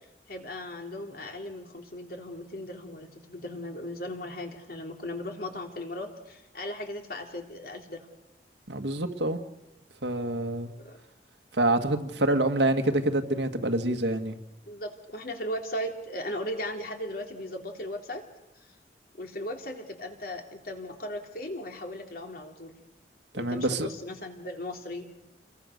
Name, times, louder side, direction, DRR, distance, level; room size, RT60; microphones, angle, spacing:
voice 1, 0.3-8.1 10.8-11.0 14.7-18.2 18.6-18.7 19.1-22.7 23.3-25.1, left 1 dB, 55° left, 3 dB, 3.5 m, -37 dB
voice 2, 8.7-9.4 10.0-10.7 11.5-14.4 23.3-23.9, right 1 dB, 75° right, 6 dB, 1.9 m, -26 dB
28.0 x 22.5 x 6.7 m, 0.88 s
head